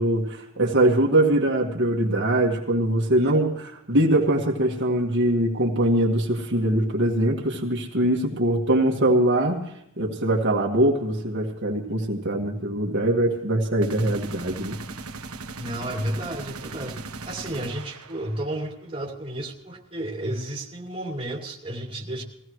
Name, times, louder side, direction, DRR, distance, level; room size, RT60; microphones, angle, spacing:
voice 1, 0.0-9.6 10.0-14.8, right 1 dB, 55° right, -1 dB, 1.8 m, -22 dB
sound 1, 13.8-18.6, right 3 dB, 75° right, 1.2 m, -38 dB
voice 2, 15.6-17.0 17.2-22.2, right 1 dB, 25° right, -1 dB, 2.5 m, -32 dB
22.0 x 16.5 x 3.1 m, 0.76 s
head